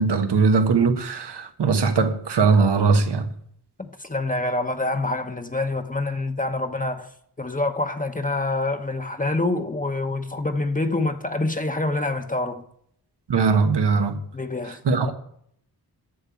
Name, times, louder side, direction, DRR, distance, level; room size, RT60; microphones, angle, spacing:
voice 1, 0.0-3.3 13.3-14.2 14.8-15.1, right 4 dB, 80° right, 1.3 m, -20 dB
voice 2, 3.8-7.1 7.4-12.6 14.3-15.1, left 2 dB, 20° left, 0.9 m, -26 dB
7.7 x 7.2 x 8.3 m
cardioid pair, 70°, 40 cm